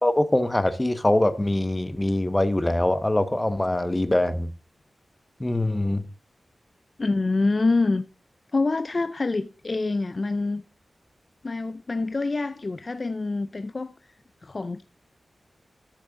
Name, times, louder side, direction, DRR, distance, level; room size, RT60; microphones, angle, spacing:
voice 1, 0.0-4.5 5.4-6.0, left 1 dB, 15° left, 1.0 m, -23 dB
voice 2, 7.0-8.0 8.5-10.6 11.4-14.0 14.4-14.9, left 3 dB, 40° left, 0.5 m, -26 dB
12.5 x 6.4 x 3.8 m
wide cardioid pair, 100°, 0 cm